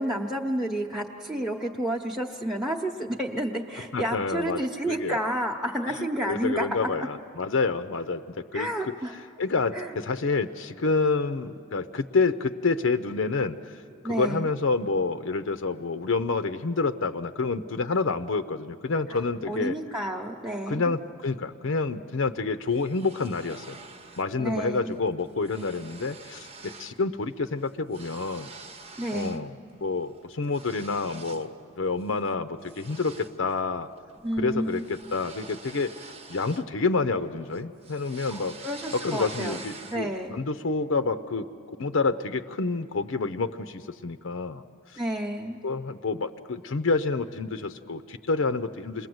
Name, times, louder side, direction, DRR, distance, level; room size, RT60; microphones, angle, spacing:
voice 1, 0.0-7.1 8.5-9.1 9.7-9.9 14.0-14.5 19.1-19.2 19.5-20.9 24.4-25.0 29.0-29.4 34.2-34.8 38.3-39.6 39.9-40.4 45.0-45.6, right 1 dB, ahead, -1 dB, 0.9 m, -30 dB
voice 2, 3.9-5.2 5.9-8.9 9.4-13.7 14.1-19.7 20.7-23.8 24.2-28.5 29.1-29.5 29.8-31.5 31.8-33.9 34.4-36.0 36.3-38.6 38.9-41.5 41.8-44.6 45.6-49.1, left 4 dB, 70° left, 9 dB, 0.6 m, -28 dB
sound 1, 22.7-24.3 24.7-24.9 25.2-27.0 27.3-29.5 29.9-31.5 32.0-32.2 32.6-37.2 37.5-40.2, right 4 dB, 30° right, 0.9 m, -46 dB
28.0 x 20.5 x 7.9 m, 2.5 s
head